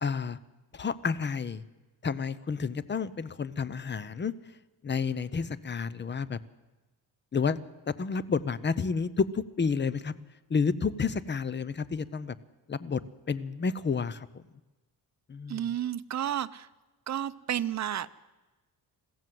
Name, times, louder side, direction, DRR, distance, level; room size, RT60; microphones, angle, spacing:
voice 1, 0.0-0.4 0.7-1.6 2.0-4.3 4.8-6.4 7.3-7.6 7.9-10.1 10.5-12.3 12.7-13.0 13.3-14.4 15.3-15.6, left 5 dB, 30° left, 18 dB, 0.7 m, -30 dB
voice 2, 15.5-16.7 17.1-18.1, right 10 dB, 45° right, 12 dB, 0.7 m, -31 dB
21.5 x 15.5 x 7.7 m, 1.2 s
wide cardioid pair, 125°, 40 cm